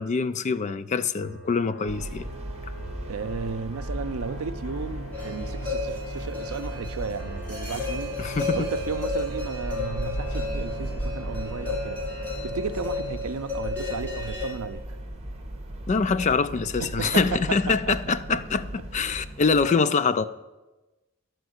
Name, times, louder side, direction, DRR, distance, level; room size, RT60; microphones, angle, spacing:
voice 1, 0.0-2.3 8.2-8.7 15.9-18.6 18.9-20.3, left 4 dB, 35° left, 0.4 m, -24 dB
sound 1, 1.2-13.2, right 1 dB, 70° left, 3.3 m, -42 dB
sound 2, 1.9-19.7, right 1 dB, 30° right, 1.1 m, -36 dB
voice 2, 3.1-8.2 8.5-12.0 12.4-15.0 16.8-17.4 17.7-18.4, right 5 dB, 80° right, 0.5 m, -34 dB
sound 3, 5.1-14.5, left 3 dB, 5° left, 3.4 m, -33 dB
11.5 x 4.6 x 7.9 m
head